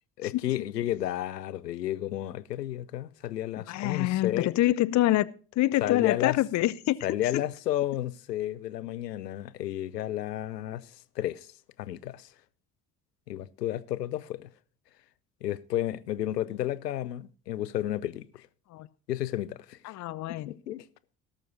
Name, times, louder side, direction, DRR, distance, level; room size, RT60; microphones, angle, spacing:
voice 1, 0.2-4.5 5.8-6.4 7.0-11.5 11.8-12.3 13.3-14.5 15.4-18.5 19.1-19.9 20.5-20.8, left 13 dB, 80° left, 0.6 m, -32 dB
voice 2, 3.6-5.3 5.6-7.0 18.7-18.9 19.8-20.5, left 15 dB, 35° left, 0.6 m, -26 dB
18.0 x 6.6 x 4.0 m
figure-of-eight pair, 50°, 48 cm